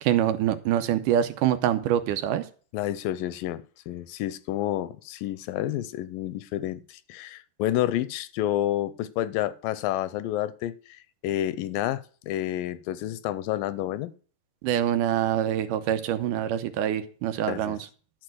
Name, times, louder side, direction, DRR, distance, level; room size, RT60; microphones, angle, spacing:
voice 1, 0.0-2.4 14.6-17.8, right 11 dB, 80° right, 2.2 m, -25 dB
voice 2, 2.7-10.8 11.2-14.1 17.5-17.8, left 13 dB, 85° left, 2.3 m, -29 dB
11.5 x 4.5 x 7.8 m
omnidirectional pair, 3.9 m